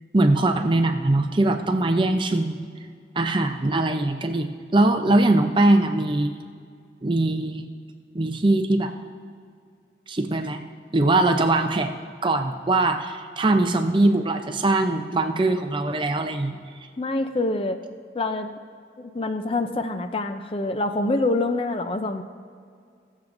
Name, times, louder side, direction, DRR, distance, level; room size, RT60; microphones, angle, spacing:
voice 1, 0.1-2.7 3.2-6.4 7.0-7.7 8.1-8.9 10.1-10.6 10.9-11.9 12.2-16.6, right 2 dB, 25° right, 6 dB, 0.5 m, -21 dB
voice 2, 17.0-17.8 18.1-18.5 19.0-22.2, left 2 dB, 30° left, 8 dB, 0.5 m, -26 dB
21.5 x 7.3 x 2.6 m, 2.2 s
head